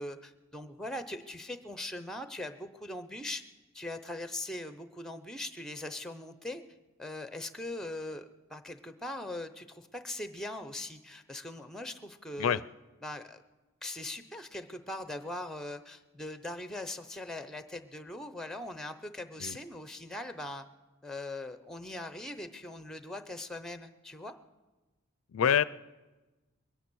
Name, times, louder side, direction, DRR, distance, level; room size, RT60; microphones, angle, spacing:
voice 1, 0.0-3.4 3.7-6.6 7.0-12.6 13.0-13.4 13.8-20.6 21.0-24.3, left 1 dB, ahead, 10 dB, 0.6 m, -41 dB
voice 2, 25.3-25.6, left 8 dB, 80° left, 17 dB, 0.4 m, -26 dB
22.0 x 10.0 x 6.2 m, 1.2 s
head